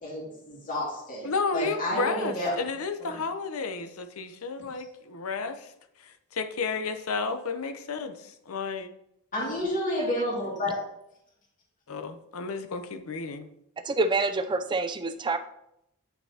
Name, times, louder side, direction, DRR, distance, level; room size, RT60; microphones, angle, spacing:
voice 1, 0.0-2.5 3.0-3.2 9.3-10.8, left 1 dB, 35° left, -5 dB, 2.2 m, -30 dB
voice 2, 1.2-5.7 6.0-8.9 11.9-13.5, left 4 dB, 70° left, 8 dB, 0.7 m, -32 dB
voice 3, 13.8-15.4, right 3 dB, 20° right, 7 dB, 0.4 m, -26 dB
9.3 x 5.7 x 2.8 m, 0.79 s
head